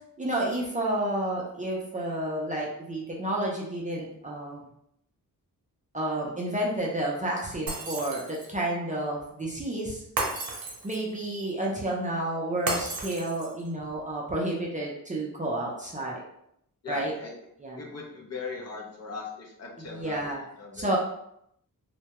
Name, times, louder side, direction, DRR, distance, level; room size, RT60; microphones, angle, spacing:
voice 1, 0.2-4.7 5.9-10.0 10.8-16.2 16.9-17.1 17.6-17.8 19.8-20.4 20.7-21.0, right 1 dB, 20° right, -4 dB, 0.4 m, -30 dB
Shatter, 7.7-8.6 10.2-11.2 12.7-13.7, right 2 dB, 80° right, 0.6 m, -33 dB
voice 2, 16.8-17.3 17.8-20.3 20.6-20.8, left 4 dB, 45° left, -3 dB, 0.6 m, -38 dB
2.2 x 2.1 x 2.8 m, 0.74 s
wide cardioid pair, 130°, 35 cm